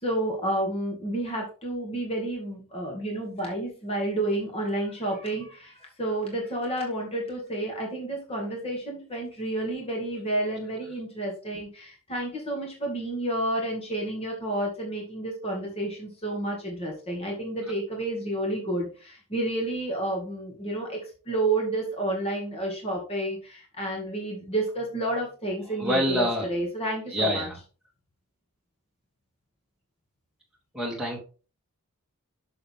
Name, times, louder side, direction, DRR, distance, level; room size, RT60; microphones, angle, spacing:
voice 1, 0.0-21.0 21.3-27.5, right 1 dB, 25° left, 0 dB, 2.2 m, -30 dB
voice 2, 25.7-26.5 27.1-27.6 30.7-31.2, equal, 5° right, -3 dB, 2.6 m, -26 dB
7.0 x 6.6 x 3.6 m, 0.35 s
head